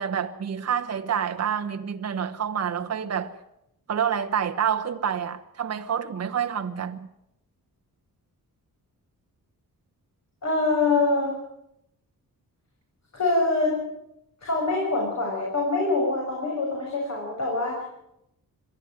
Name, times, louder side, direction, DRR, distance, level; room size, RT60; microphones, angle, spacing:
voice 1, 0.0-3.3 3.9-7.1, right 8 dB, 45° right, 1.1 m, -28 dB
voice 2, 10.4-11.4 13.1-13.8 14.4-17.8, left 3 dB, 50° left, 6.7 m, -24 dB
23.0 x 13.5 x 9.2 m
cardioid pair, 100°, 36 cm